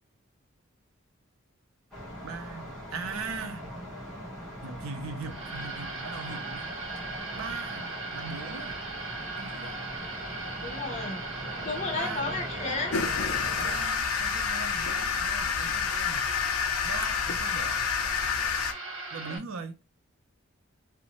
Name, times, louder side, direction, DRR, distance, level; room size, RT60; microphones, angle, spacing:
sound 1, 1.9-13.8, equal, ahead, 0.9 m, -41 dB
voice 1, 2.2-3.7 4.6-6.7 7.3-8.8 9.4-9.8 11.9-12.4 13.6-16.3 16.8-17.9 19.1-19.8, right 4 dB, 80° right, 0.5 m, -39 dB
sound 2, 5.2-19.4, right 3 dB, 60° right, 0.8 m, -38 dB
voice 2, 10.6-11.2 11.6-13.0 18.3-18.6, left 3 dB, 30° left, 0.7 m, -33 dB
sound 3, 12.9-18.7, left 7 dB, 85° left, 0.4 m, -29 dB
2.5 x 2.1 x 2.9 m
head